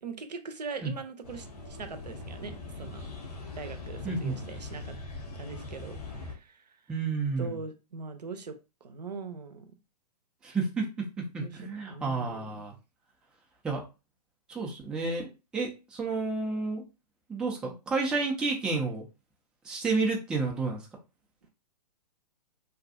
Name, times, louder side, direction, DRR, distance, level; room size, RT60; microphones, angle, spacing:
voice 1, 0.0-3.1 3.5-5.0 5.4-6.8 7.4-8.5 8.8-9.7 11.4-11.6 11.9-12.6, right 4 dB, 75° right, 8 dB, 0.5 m, -41 dB
sound 1, 1.2-6.3, left 2 dB, 65° left, 0.7 m, -41 dB
voice 2, 4.0-4.4 6.9-7.6 10.4-12.7 13.6-13.8 14.5-16.8 17.3-19.1 19.6-20.8, right 3 dB, 5° right, 0 dB, 0.3 m, -31 dB
2.6 x 2.2 x 2.5 m, 0.28 s
figure-of-eight pair, 115°, 21 cm